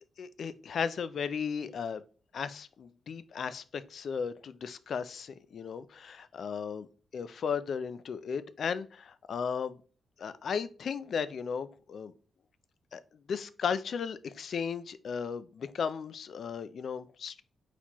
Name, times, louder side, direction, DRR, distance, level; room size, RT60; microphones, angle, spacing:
voice 1, 0.2-2.0 2.3-6.9 7.1-9.8 10.2-12.1 12.9-13.0 13.3-17.4, left 6 dB, 60° left, 0.4 m, -35 dB
4.2 x 4.1 x 2.9 m
cardioid pair, 120°, 0 cm